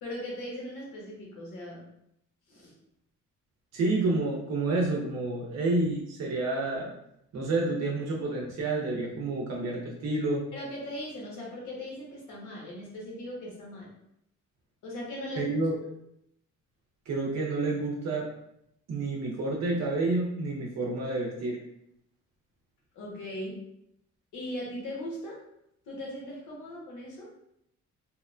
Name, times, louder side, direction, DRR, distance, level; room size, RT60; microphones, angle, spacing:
voice 1, 0.0-1.8 2.5-2.7 10.5-13.9 14.8-15.5 22.9-23.6 24.3-25.4 25.8-27.3, left 1 dB, 85° left, -3 dB, 1.0 m, -39 dB
voice 2, 3.7-6.9 7.3-10.4 15.4-15.7 17.1-18.3 18.9-21.6, right 2 dB, 60° right, -2 dB, 0.6 m, -29 dB
2.8 x 2.0 x 2.4 m, 0.76 s
cardioid pair, 90°, 30 cm